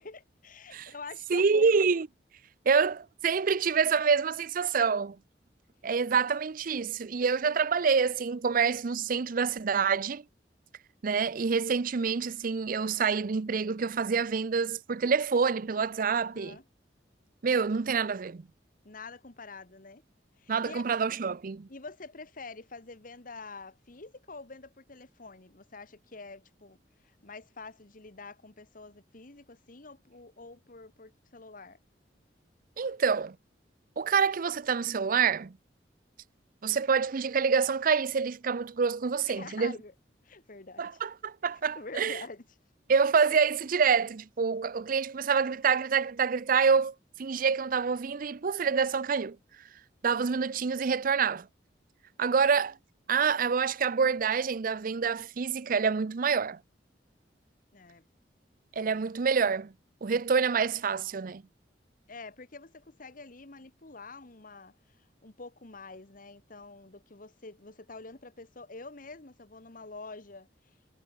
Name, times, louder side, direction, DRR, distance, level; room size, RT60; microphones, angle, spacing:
voice 1, 0.0-1.7 16.2-16.6 18.8-20.0 20.4-20.8 21.7-26.8 27.0-31.8 39.2-39.9 40.2-41.0 41.7-42.4 57.7-58.0 58.8-59.1 62.1-70.9, left 3 dB, 50° left, 1.6 m, -46 dB
voice 2, 1.3-2.1 2.7-5.2 5.8-10.2 11.0-16.6 17.4-18.5 20.5-21.7 32.8-33.4 34.0-35.6 36.6-39.8 40.8-42.2 42.9-49.4 50.0-51.5 52.2-52.8 53.1-56.6 58.8-59.7 60.0-61.4, right 5 dB, 50° right, 0.5 m, -27 dB
head